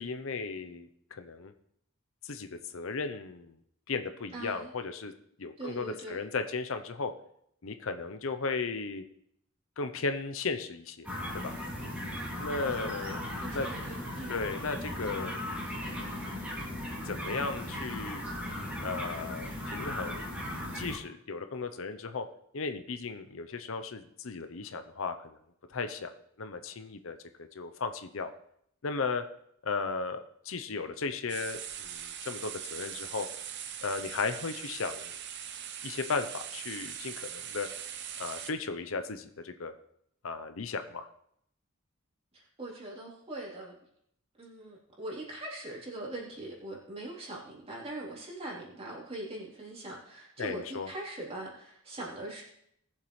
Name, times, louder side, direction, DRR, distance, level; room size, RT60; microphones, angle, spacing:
voice 1, 0.0-1.5 2.2-3.5 3.9-5.1 5.4-7.1 7.6-9.0 9.8-11.1 11.3-11.6 12.4-13.2 13.5-13.7 14.3-15.3 15.7-16.3 17.0-18.2 18.8-20.2 20.7-22.2 22.5-25.4 25.7-26.1 26.4-27.2 27.5-28.3 28.8-29.2 29.6-33.3 33.8-35.1 35.8-37.7 38.2-39.7 40.2-41.1 50.4-50.9, left 4 dB, 65° left, 8 dB, 0.7 m, -35 dB
voice 2, 4.3-4.7 5.6-6.2 13.4-14.4 42.3-43.7 44.4-52.4, right 1 dB, 30° right, -4 dB, 3.4 m, -41 dB
sound 1, 11.0-21.0, left 1 dB, 5° right, 2.6 m, -37 dB
sound 2, 31.3-38.5, right 9 dB, 55° right, 0.9 m, -41 dB
20.0 x 7.4 x 3.2 m, 0.72 s
head